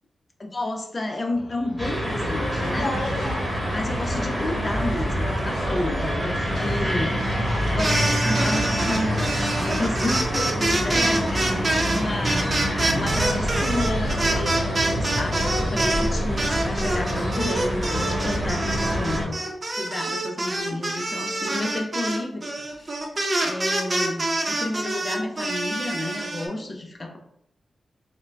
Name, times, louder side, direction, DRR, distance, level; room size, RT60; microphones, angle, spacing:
voice 1, 0.4-3.0 3.6-7.3 7.6-19.4 19.8-22.9 23.4-27.2, left 2 dB, 35° left, 3 dB, 0.6 m, -31 dB
sound 1, 1.3-17.6, left 1 dB, 85° left, 0.8 m, -39 dB
sound 2, 1.8-19.2, equal, 5° right, 1.4 m, -26 dB
sound 3, 7.7-16.1 16.4-26.5, right 2 dB, 40° right, 0.7 m, -26 dB
3.7 x 2.2 x 3.3 m, 0.75 s
cardioid pair, 70°, 0 cm